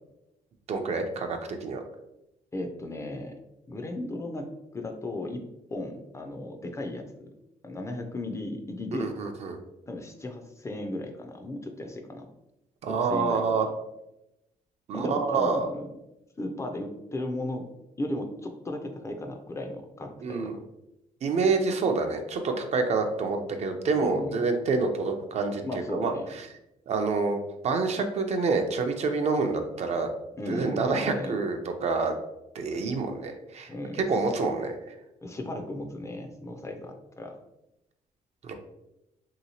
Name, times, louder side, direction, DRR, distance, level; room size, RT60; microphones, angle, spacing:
voice 1, 0.7-1.8 9.0-9.6 12.8-13.7 14.9-15.7 20.2-20.6 21.2-26.1 26.9-27.4 27.6-30.1 30.5-32.2 32.5-33.7 34.1-34.7 38.4-38.5, right 4 dB, 50° right, 5 dB, 0.4 m, -27 dB
voice 2, 2.5-3.3 3.7-5.4 5.7-7.3 7.6-9.1 9.9-12.3 12.9-13.7 14.9-15.9 16.4-17.7 18.0-20.4 24.0-24.4 25.6-26.3 30.4-31.4 33.7-34.4 35.2-37.4, left 1 dB, 20° left, 4 dB, 0.4 m, -36 dB
3.1 x 2.9 x 2.7 m, 0.89 s
cardioid pair, 110°, 14 cm